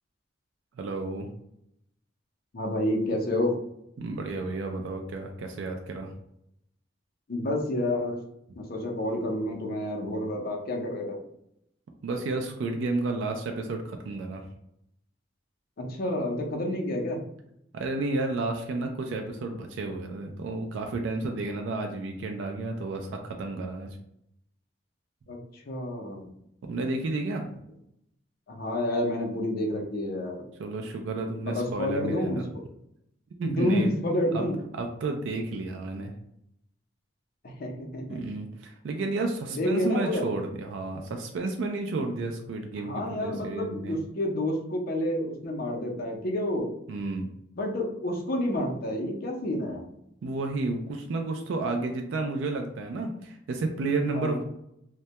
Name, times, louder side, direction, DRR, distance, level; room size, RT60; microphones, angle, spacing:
voice 1, 0.8-1.3 4.0-6.1 12.0-14.5 17.7-24.0 26.6-27.5 30.6-32.4 33.4-33.9 34.3-34.4 34.8-36.1 38.1-44.0 46.9-47.3 50.2-54.4, right 3 dB, 85° right, 4 dB, 0.3 m, -31 dB
voice 2, 2.5-3.5 7.3-8.2 8.6-11.2 15.8-17.2 25.3-26.3 28.5-30.4 31.4-32.4 33.4-34.6 37.4-38.2 39.5-40.3 42.8-46.7 47.6-49.8 54.1-54.4, left 1 dB, 55° left, 0 dB, 0.5 m, -29 dB
2.2 x 2.1 x 2.7 m, 0.78 s
head